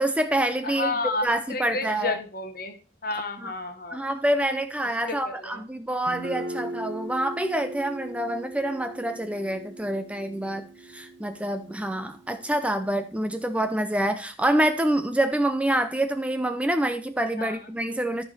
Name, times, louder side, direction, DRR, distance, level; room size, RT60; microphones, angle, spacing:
voice 1, 0.0-0.9 1.2-2.2 3.4-3.5 3.9-18.2, right 1 dB, 5° right, 0.5 m, -26 dB
voice 2, 0.6-2.8 3.0-4.1 5.1-5.6 17.4-17.6, left 3 dB, 55° left, 1.4 m, -31 dB
Guitar, 6.1-13.7, right 2 dB, 85° right, 1.0 m, -40 dB
13.5 x 4.8 x 4.2 m
head